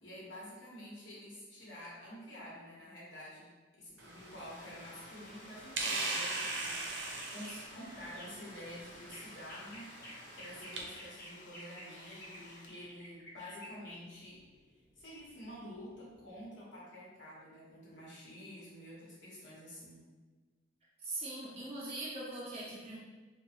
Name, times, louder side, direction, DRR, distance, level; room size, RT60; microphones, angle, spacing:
voice 1, 0.0-3.5 3.8-14.4 15.0-20.0, equal, 85° left, -7 dB, 1.1 m, -49 dB
Domestic sounds home sounds, 3.9-13.1, left 3 dB, 45° left, 0.3 m, -57 dB
sound 1, 4.0-10.8, right 2 dB, 85° right, 0.5 m, -41 dB
sound 2, 6.9-16.4, equal, 60° left, 0.8 m, -54 dB
voice 2, 21.0-23.0, right 2 dB, 35° right, -4 dB, 0.4 m, -41 dB
2.8 x 2.2 x 2.9 m, 1.3 s
head